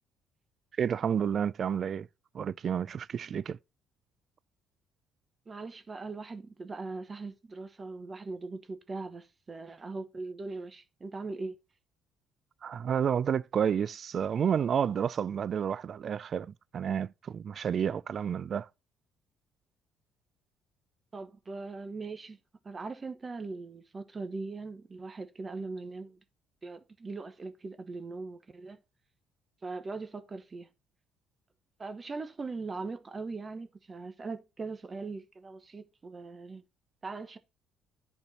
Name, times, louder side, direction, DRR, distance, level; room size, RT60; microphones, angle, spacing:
voice 1, 0.8-2.1 2.3-3.6 12.6-18.7, right 8 dB, 45° right, 0.3 m, -30 dB
voice 2, 5.5-11.5 21.1-22.4 22.6-26.2 26.6-28.8 29.6-30.7 31.8-36.6 37.0-37.4, right 3 dB, 25° right, 1.1 m, -40 dB
10.5 x 4.4 x 4.2 m
cardioid pair, 105°, 0 cm